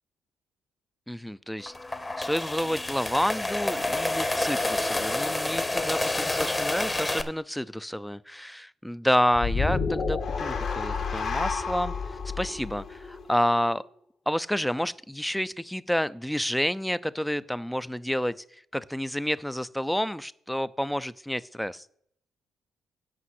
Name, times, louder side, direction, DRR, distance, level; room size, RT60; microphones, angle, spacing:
voice 1, 1.1-1.7 2.2-13.8 14.3-18.4 18.7-21.8, equal, 5° left, 17 dB, 0.4 m, -29 dB
sound 1, 1.6-7.2, left 2 dB, 20° left, 1.0 m, -28 dB
sound 2, 9.3-13.7, left 5 dB, 65° left, 2.1 m, -30 dB
8.5 x 5.5 x 7.8 m, 0.67 s
cardioid pair, 90°, 0 cm